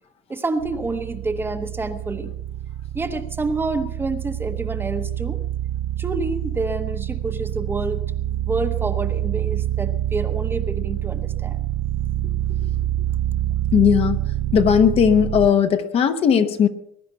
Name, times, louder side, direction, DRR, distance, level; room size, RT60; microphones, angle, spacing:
voice 1, 0.3-2.3 2.9-5.4 6.0-8.0 8.5-11.6, right 3 dB, 10° right, 7 dB, 1.0 m, -28 dB
sound 1, 0.6-15.5, right 12 dB, 50° right, 0.8 m, -26 dB
voice 2, 13.7-14.2 14.5-16.7, left 8 dB, 35° left, 9 dB, 1.0 m, -17 dB
21.5 x 11.0 x 5.7 m, 0.76 s
cardioid pair, 155°, 18 cm